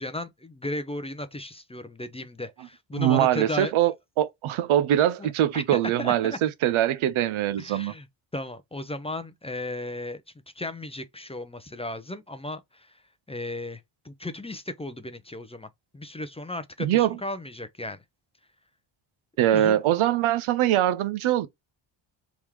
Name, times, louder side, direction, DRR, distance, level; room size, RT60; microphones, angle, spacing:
voice 1, 0.0-3.7 5.2-5.6 6.0-6.4 7.6-8.1 8.3-10.2 10.6-13.0 13.3-18.0 19.5-19.8, left 1 dB, 15° left, 0.5 m, -35 dB
voice 2, 2.9-7.9 16.8-17.2 19.4-21.5, right 12 dB, 80° right, 0.6 m, -23 dB
3.6 x 3.0 x 3.1 m
cardioid pair, 80°, 48 cm